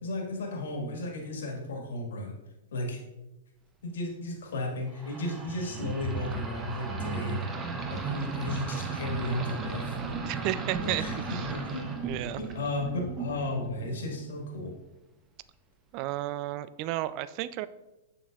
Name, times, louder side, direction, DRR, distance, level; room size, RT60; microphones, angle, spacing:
voice 1, 0.0-2.3 2.7-3.0 3.8-7.5 7.9-10.0 10.8-11.8 12.4-14.7, left 1 dB, 70° left, 1 dB, 1.7 m, -34 dB
sound 1, 4.9-14.3, right 4 dB, 25° right, 0.9 m, -35 dB
voice 2, 10.3-11.5 12.0-12.4 15.9-17.7, right 15 dB, 45° right, 15 dB, 0.3 m, -33 dB
6.9 x 6.6 x 2.4 m, 0.99 s
hypercardioid pair, 110°, 0 cm